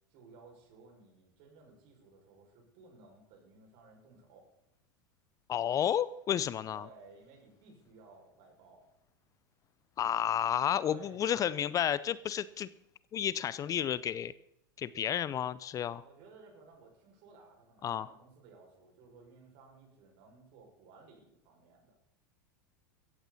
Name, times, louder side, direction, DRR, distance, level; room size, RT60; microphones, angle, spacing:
voice 1, 0.1-4.5 6.7-8.8 10.8-11.5 16.0-21.9, right 4 dB, 55° right, 2 dB, 6.0 m, -57 dB
voice 2, 5.5-6.8 10.0-12.7 13.1-14.3 14.8-16.0 17.8-18.1, left 10 dB, 30° left, 18 dB, 0.6 m, -31 dB
16.0 x 15.0 x 4.2 m, 0.79 s
hypercardioid pair, 90°, 11 cm